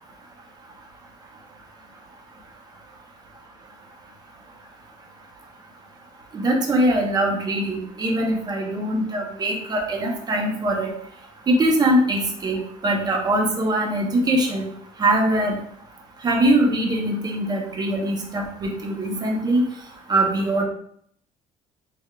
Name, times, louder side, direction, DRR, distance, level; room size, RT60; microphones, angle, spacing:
voice 1, 6.3-10.9 11.5-14.7 15.0-15.6 16.2-19.6 20.1-20.6, right 1 dB, 25° right, 1 dB, 0.7 m, -22 dB
3.5 x 3.4 x 2.2 m, 0.66 s
cardioid pair, 145°, 15 cm